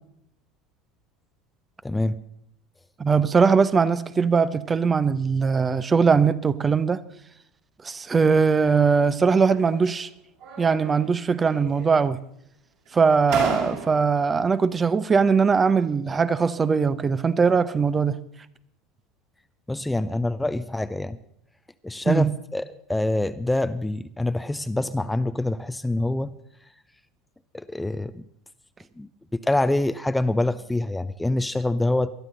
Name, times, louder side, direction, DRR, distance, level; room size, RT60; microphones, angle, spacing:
voice 1, 1.8-2.2 19.7-21.2 21.8-22.6 22.9-26.3 27.5-28.2 29.0-32.1, left 2 dB, 10° left, 0.6 m, -25 dB
voice 2, 3.0-7.0 7.8-10.1 10.6-12.2 12.9-18.2 22.0-22.3, right 5 dB, 25° right, 0.7 m, -20 dB
sound 1, 9.4-10.0 10.4-11.2 11.5-12.2 12.9-13.0 13.3-14.2, right 4 dB, 55° right, 4.7 m, -34 dB
21.0 x 12.0 x 4.0 m
figure-of-eight pair, 70°, 0 cm